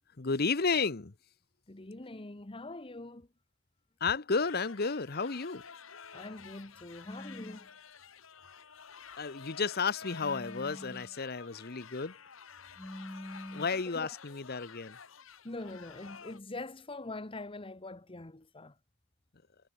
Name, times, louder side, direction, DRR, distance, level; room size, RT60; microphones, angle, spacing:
voice 1, 0.2-1.1 4.0-5.6 9.2-12.2 13.5-15.0, left 4 dB, 50° left, 1.0 m, -32 dB
voice 2, 1.7-3.3 6.1-7.7 13.9-14.1 15.4-18.7, left 2 dB, 25° left, 1.1 m, -44 dB
sound 1, 4.4-16.4, left 6 dB, 80° left, 1.6 m, -51 dB
sound 2, 7.1-7.7 10.2-11.2 12.8-13.8, left 1 dB, 10° left, 0.8 m, -45 dB
head